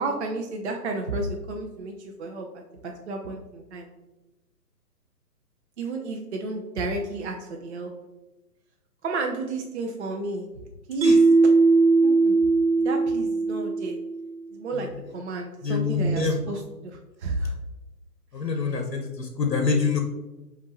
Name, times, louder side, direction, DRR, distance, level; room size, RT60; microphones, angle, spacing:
voice 1, 0.0-3.9 5.8-7.9 9.0-10.5 10.9-11.2 12.0-12.4 12.8-14.0 14.5-14.9 15.1-17.5 18.7-18.8, right 2 dB, 45° right, 1 dB, 0.5 m, -32 dB
Mallet percussion, 11.0-14.3, right 3 dB, 90° right, 0.7 m, -19 dB
voice 2, 15.6-16.4 18.3-20.0, left 4 dB, 85° left, 4 dB, 0.7 m, -25 dB
5.1 x 2.5 x 3.0 m, 1.0 s
figure-of-eight pair, 130°, 48 cm